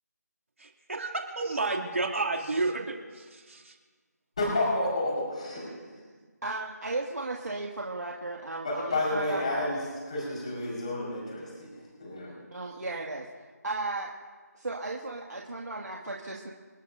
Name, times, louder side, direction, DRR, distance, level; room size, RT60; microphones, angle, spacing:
voice 1, 0.6-3.8, right 3 dB, 50° right, 2 dB, 2.5 m, -31 dB
voice 2, 4.4-5.7 8.6-9.8 10.1-12.3, left 2 dB, 25° left, -4 dB, 4.6 m, -30 dB
voice 3, 6.4-9.6 12.5-14.1 14.5-16.5, right 2 dB, 75° right, -2 dB, 2.1 m, -35 dB
28.5 x 11.0 x 2.6 m, 1.5 s
figure-of-eight pair, 180°, 9 cm